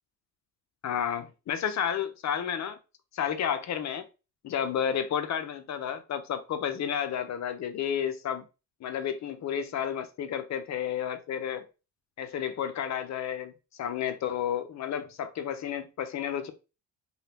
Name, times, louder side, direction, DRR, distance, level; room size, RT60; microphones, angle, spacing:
voice 1, 0.8-2.8 3.1-4.0 4.4-8.4 8.8-11.6 12.2-13.5 13.8-16.5, left 8 dB, 40° left, 0.6 m, -31 dB
2.7 x 2.3 x 3.3 m
supercardioid pair, 85°, 41 cm